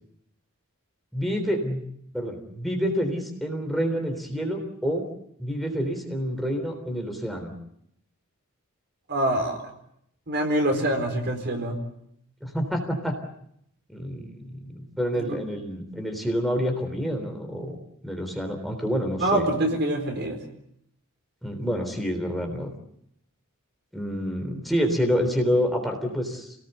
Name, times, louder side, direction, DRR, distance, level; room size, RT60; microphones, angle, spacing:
voice 1, 1.1-1.8 2.1-5.0 5.4-7.5 12.4-13.2 13.9-17.8 18.0-19.5 21.4-22.7 23.9-26.5, equal, ahead, 2 dB, 3.5 m, -28 dB
voice 2, 9.1-9.6 10.3-11.8 15.1-15.4 19.2-20.4, right 1 dB, 50° right, 4 dB, 4.4 m, -25 dB
28.5 x 19.0 x 8.1 m, 0.74 s
head